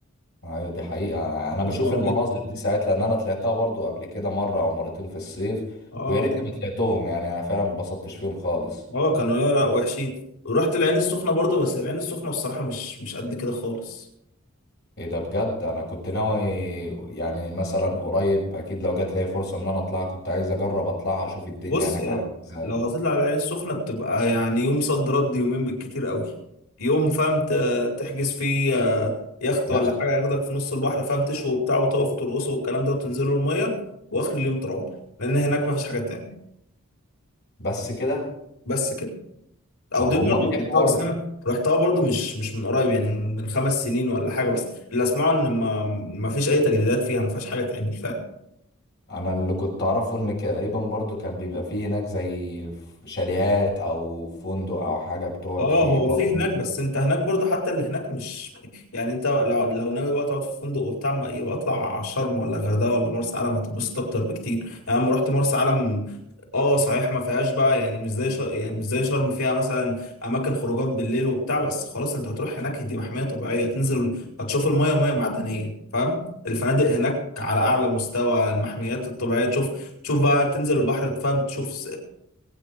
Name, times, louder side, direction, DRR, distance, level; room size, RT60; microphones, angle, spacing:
voice 1, 0.4-5.6 6.1-8.8 15.0-22.2 22.5-22.7 29.7-29.9 37.6-38.3 40.0-41.0 49.1-52.7 53.0-56.4, left 1 dB, 50° left, -2 dB, 6.3 m, -27 dB
voice 2, 1.6-2.2 5.9-6.3 8.9-10.2 10.4-14.0 21.7-22.2 22.6-26.3 26.8-33.8 34.1-34.9 35.2-36.3 38.6-39.1 39.9-48.2 55.6-66.0 66.5-76.2 76.4-82.0, left 1 dB, 90° left, 1 dB, 4.6 m, -24 dB
21.5 x 9.6 x 5.0 m, 0.78 s
head